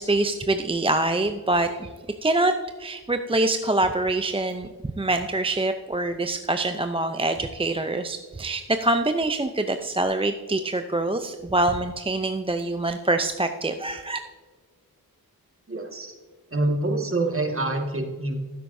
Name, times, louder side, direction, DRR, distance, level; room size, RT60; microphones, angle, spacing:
voice 1, 0.0-1.9 2.2-2.5 2.8-4.7 5.0-14.2, right 2 dB, 15° right, 7 dB, 0.5 m, -25 dB
voice 2, 15.7-16.1 16.5-18.4, right 2 dB, 35° right, 2 dB, 1.8 m, -26 dB
15.0 x 8.0 x 2.7 m, 1.5 s
cardioid pair, 55°, 37 cm